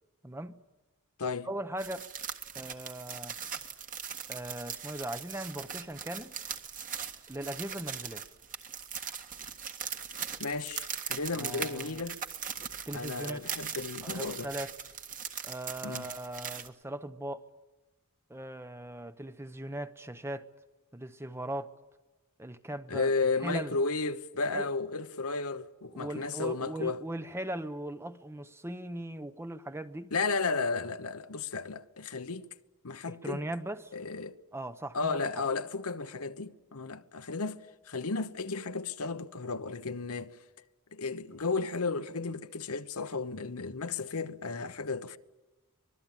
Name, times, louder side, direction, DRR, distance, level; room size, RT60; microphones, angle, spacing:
voice 1, 0.2-0.6 1.5-2.1 2.5-3.4 4.3-6.3 7.3-8.2 11.3-12.0 12.9-13.4 14.0-14.7 15.4-17.4 18.3-20.5 20.9-21.7 22.4-23.1 23.4-23.8 24.5-24.7 25.9-30.1 33.1-33.9 34.5-35.5, right 1 dB, 10° right, 0.8 m, -39 dB
sound 1, 1.8-16.7, right 7 dB, 35° right, 1.6 m, -40 dB
voice 2, 10.4-12.2 12.9-14.5 15.8-16.1 22.9-27.0 30.1-32.5 32.8-33.4 33.9-34.4 34.9-40.4 40.9-45.2, left 4 dB, 75° left, 1.0 m, -33 dB
25.0 x 21.0 x 9.0 m
head